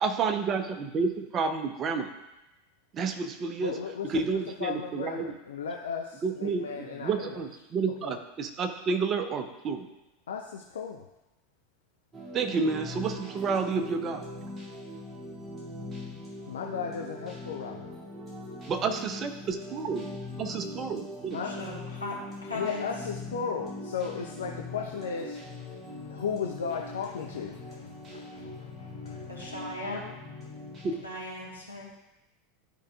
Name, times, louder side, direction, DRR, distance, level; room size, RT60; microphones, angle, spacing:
voice 1, 0.0-2.1 2.9-3.8 4.0-5.3 6.2-9.9 12.3-14.2 18.7-20.0 20.4-21.4 30.8-31.0, right 5 dB, 30° right, 6 dB, 0.7 m, -30 dB
voice 2, 3.6-7.4 8.0-8.1 10.3-11.1 16.5-18.0 21.3-21.6 22.5-28.4 29.1-29.4 30.4-30.8, left 6 dB, 65° left, 1 dB, 0.5 m, -36 dB
sound 1, 12.1-31.0, left 1 dB, 15° right, 2.2 m, -41 dB
voice 3, 21.4-22.9 29.3-30.1 31.0-31.9, left 1 dB, 85° left, -5 dB, 1.7 m, -37 dB
12.0 x 4.9 x 2.3 m, 0.95 s
figure-of-eight pair, 80°, 0 cm